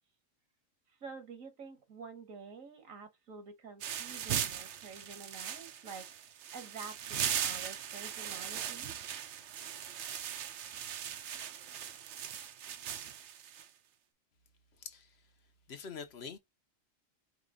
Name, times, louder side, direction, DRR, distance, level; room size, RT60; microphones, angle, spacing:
voice 1, 1.0-9.0, right 4 dB, 85° right, 1.7 m, -49 dB
sound 1, 3.8-13.7, right 9 dB, 65° right, 0.9 m, -39 dB
voice 2, 14.8-15.1 15.7-16.4, left 6 dB, 55° left, 1.0 m, -44 dB
5.0 x 2.5 x 3.7 m
omnidirectional pair, 1.4 m